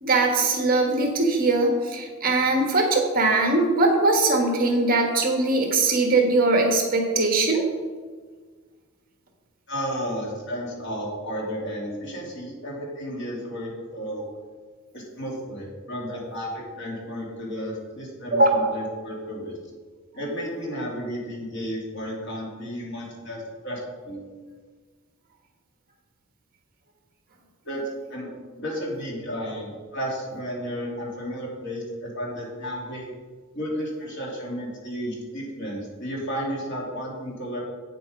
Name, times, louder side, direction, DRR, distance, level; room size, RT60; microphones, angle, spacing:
voice 1, 0.0-7.6 18.3-18.7, right 2 dB, 40° right, 2 dB, 1.5 m, -21 dB
voice 2, 9.7-14.2 14.9-19.6 20.1-23.8 24.0-24.2 27.6-28.3 28.6-33.1 33.5-37.6, equal, 55° left, -3 dB, 3.0 m, -33 dB
8.7 x 7.5 x 5.2 m, 1.5 s
head